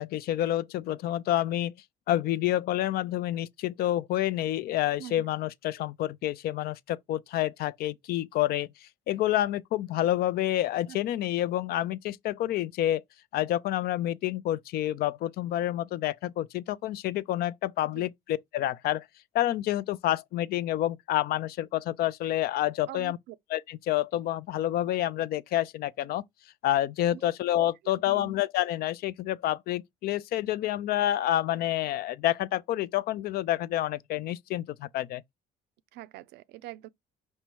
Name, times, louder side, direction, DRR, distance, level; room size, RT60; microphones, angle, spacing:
voice 1, 0.0-1.7 2.1-13.0 13.3-19.1 19.3-23.2 23.5-26.2 26.6-35.2, left 13 dB, 65° left, 0.4 m, -28 dB
voice 2, 22.9-23.4 27.1-27.3 28.1-28.3 35.9-36.9, right 14 dB, 80° right, 0.4 m, -44 dB
5.5 x 2.1 x 4.5 m
cardioid pair, 110°, 17 cm